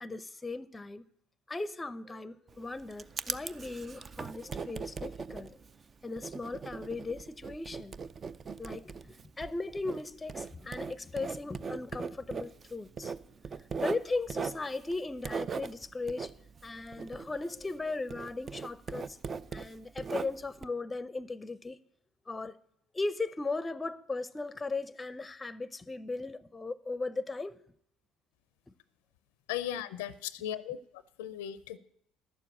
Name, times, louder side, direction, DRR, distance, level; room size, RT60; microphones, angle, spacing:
voice 1, 0.0-1.0 1.5-5.6 6.0-8.0 8.6-13.1 13.8-16.3 16.6-19.2 19.5-21.8 22.3-22.6 22.9-27.6, left 3 dB, 20° left, 0.6 m, -37 dB
Writing, 2.5-17.8 18.1-20.6, right 5 dB, 35° right, 0.5 m, -40 dB
voice 2, 29.5-30.8 31.2-31.8, left 11 dB, 80° left, 0.5 m, -36 dB
11.5 x 6.9 x 8.6 m
hypercardioid pair, 70°, 0 cm